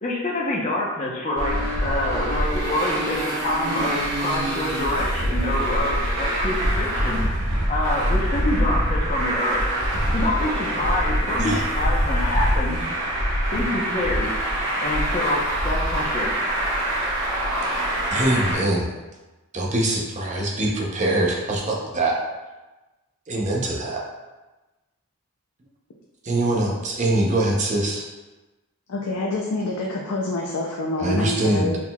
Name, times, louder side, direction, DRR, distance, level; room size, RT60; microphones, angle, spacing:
voice 1, 0.0-9.6 10.1-12.9 13.5-14.3 14.8-16.3, left 1 dB, 30° left, -3 dB, 0.7 m, -26 dB
Traffic noise roadway noise, 1.4-18.5, equal, 80° right, 1.1 m, -24 dB
voice 2, 18.1-18.9 19.5-22.2 23.3-24.0 26.2-28.1 31.0-31.7, right 1 dB, 30° right, -1 dB, 0.6 m, -23 dB
voice 3, 28.9-31.8, left 2 dB, 80° left, -1 dB, 0.5 m, -27 dB
4.4 x 3.8 x 2.2 m, 1.1 s
head